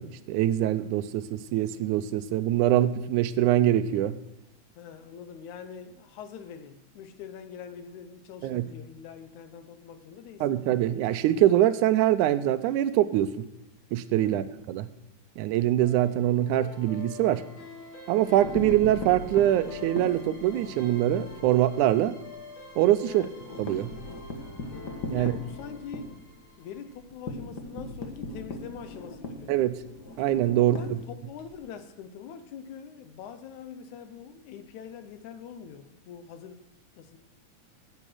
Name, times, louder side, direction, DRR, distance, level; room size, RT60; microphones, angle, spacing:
voice 1, 0.0-4.2 8.4-8.7 10.4-13.5 13.9-14.9 15.4-17.4 18.1-22.2 22.8-23.3 23.6-23.9 25.1-25.3 29.5-29.8 30.2-31.0, right 13 dB, 80° right, 2.0 m, -24 dB
voice 2, 4.8-10.6 14.2-14.5 23.1-23.3 25.1-26.2 26.6-29.5 30.6-36.6 37.0-37.2, left 7 dB, 75° left, 2.2 m, -44 dB
sound 1, 15.8-27.0, left 3 dB, 55° left, 3.3 m, -46 dB
sound 2, 18.2-21.4 21.8-22.0 22.3-22.4 22.7-31.5, left 2 dB, 40° left, 1.7 m, -39 dB
14.5 x 8.1 x 6.2 m
omnidirectional pair, 3.5 m